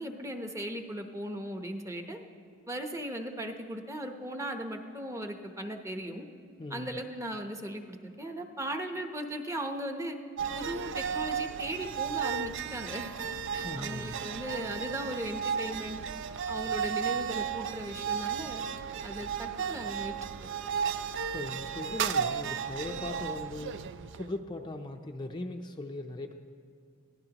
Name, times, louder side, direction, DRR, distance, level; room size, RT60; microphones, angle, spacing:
voice 1, 0.0-2.2 2.7-6.3 6.7-10.2 10.5-13.1 13.5-16.0 16.5-18.6 19.0-20.1, right 1 dB, 15° right, 4 dB, 0.9 m, -37 dB
voice 2, 6.6-7.0 13.5-14.2 21.3-23.8 24.1-26.3, left 2 dB, 20° left, 3 dB, 0.5 m, -39 dB
sound 1, 10.4-24.4, right 7 dB, 60° right, 0.4 m, -34 dB
22.5 x 16.0 x 2.9 m, 2.5 s
head